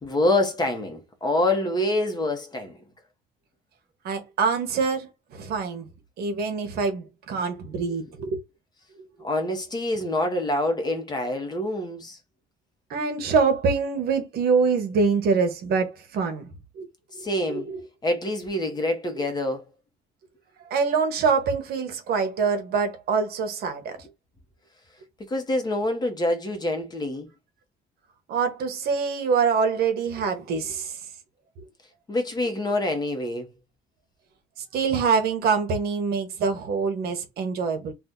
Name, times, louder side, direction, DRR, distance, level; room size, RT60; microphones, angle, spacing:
voice 1, 0.0-2.8 9.2-12.2 17.1-17.7 18.0-19.7 25.3-27.3 32.1-33.5, left 1 dB, 25° left, 1.0 m, -26 dB
voice 2, 4.0-5.9 6.2-8.4 12.9-16.9 17.1-17.8 20.7-24.0 28.3-31.0 34.7-37.9, right 5 dB, 65° right, 0.9 m, -25 dB
2.7 x 2.4 x 3.6 m
cardioid pair, 110°, 17 cm